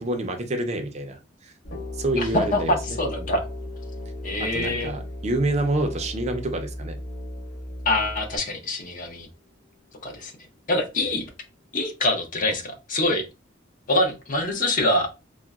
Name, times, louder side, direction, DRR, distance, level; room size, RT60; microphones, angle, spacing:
voice 1, 0.0-1.5 1.9-3.0 4.4-7.0, right 2 dB, 35° right, 6 dB, 0.4 m, -27 dB
Musical instrument, 1.6-8.4, equal, 60° left, 1.6 m, -36 dB
sound 1, 1.7-9.4, left 9 dB, 85° left, 1.4 m, -44 dB
voice 2, 2.2-3.5 4.2-4.9 7.9-9.3 10.0-10.3 10.7-11.3 11.7-13.2 13.9-15.1, left 1 dB, 45° left, 4 dB, 0.6 m, -25 dB
3.7 x 2.0 x 2.3 m, 0.28 s
head